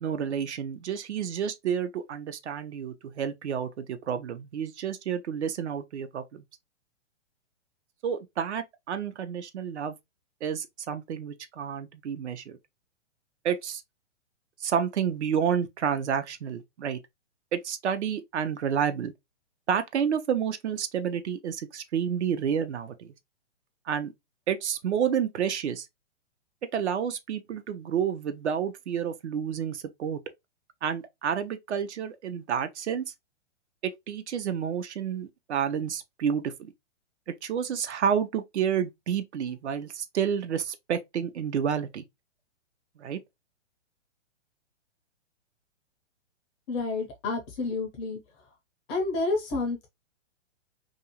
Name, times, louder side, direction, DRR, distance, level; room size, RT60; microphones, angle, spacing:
voice 1, 0.0-6.4 8.0-9.9 10.4-12.6 13.4-13.8 14.6-17.0 17.5-19.1 19.7-23.1 23.9-24.1 24.5-25.9 26.7-30.2 30.8-33.0 33.8-36.7 37.4-42.0 43.0-43.2, right 8 dB, 70° right, 0.6 m, -30 dB
voice 2, 46.7-48.2 48.9-49.9, left 3 dB, 15° left, 0.4 m, -29 dB
2.6 x 2.4 x 2.7 m
hypercardioid pair, 125°, 36 cm